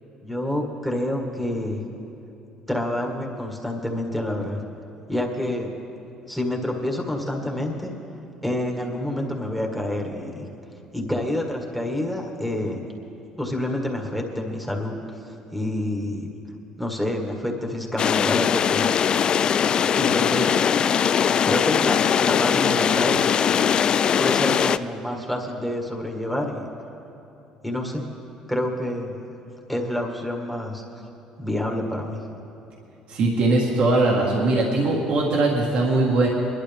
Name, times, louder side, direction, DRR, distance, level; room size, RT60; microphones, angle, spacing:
voice 1, 0.2-1.8 2.7-4.6 5.1-5.7 6.3-7.9 8.4-10.4 10.9-12.8 13.4-14.9 15.5-16.3 16.8-18.9 20.0-20.6 21.4-23.2 24.2-26.7 27.6-28.0 28.5-29.1 29.7-30.8 31.4-32.2, left 1 dB, ahead, 0 dB, 1.8 m, -28 dB
sound 1, 18.0-24.8, left 8 dB, 45° left, 0.3 m, -20 dB
voice 2, 33.1-36.3, right 2 dB, 65° right, -2 dB, 1.8 m, -20 dB
21.0 x 11.5 x 3.6 m, 2.9 s
supercardioid pair, 85°, 2 cm